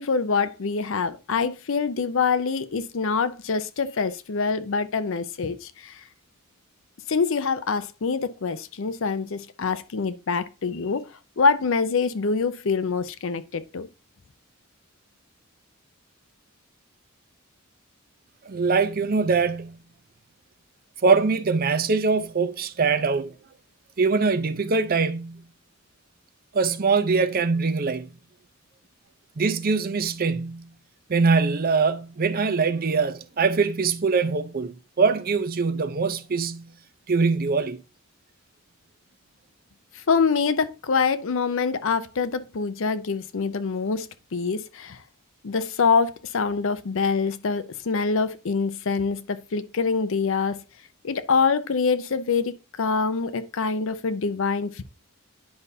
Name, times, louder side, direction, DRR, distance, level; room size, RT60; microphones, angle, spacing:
voice 1, 0.0-6.0 7.1-13.9 39.9-45.0 45.4-50.6 51.0-54.8, left 5 dB, 60° left, 0.6 m, -25 dB
voice 2, 18.4-19.8 21.0-23.3 24.0-25.4 26.5-28.1 29.4-30.7 31.1-36.7 37.1-37.8, right 4 dB, 45° right, 0.5 m, -23 dB
10.0 x 5.4 x 2.7 m
head